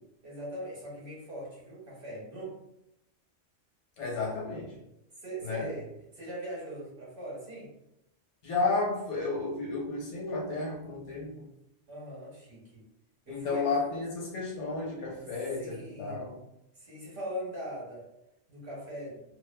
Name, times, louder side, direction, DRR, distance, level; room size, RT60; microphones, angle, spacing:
voice 1, 0.2-2.5 5.2-5.9 6.1-7.7 11.9-12.8 13.3-13.7 15.5-16.2 16.8-18.1 18.5-19.2, right 1 dB, 50° right, -5 dB, 1.0 m, -40 dB
voice 2, 4.0-4.7 5.4-5.7 8.4-11.5 13.3-16.4, left 3 dB, 75° left, -3 dB, 1.1 m, -32 dB
2.5 x 2.4 x 2.2 m, 0.83 s
omnidirectional pair, 1.2 m